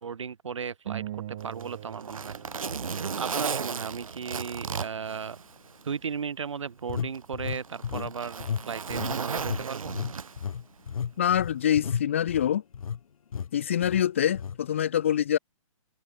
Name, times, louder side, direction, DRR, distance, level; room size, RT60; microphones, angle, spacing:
voice 1, 0.0-2.7 3.2-5.4 5.8-10.0, right 6 dB, 60° right, 4.1 m, -36 dB
sound 1, 0.9-3.5, right 13 dB, 20° right, 1.2 m, -40 dB
Zipper (clothing), 1.4-5.9 6.3-6.4 7.1-10.6 11.8-12.0, right 6 dB, 80° right, 3.1 m, -35 dB
sound 2, 2.4-2.5 3.2-3.3 6.9-8.1 8.4-8.6 8.9-13.0 13.3-13.5 13.8-14.0 14.3-14.6, left 7 dB, 80° left, 0.7 m, -33 dB
voice 2, 11.2-12.6 13.5-15.4, left 10 dB, 20° left, 0.6 m, -25 dB
hypercardioid pair, 180°, 18 cm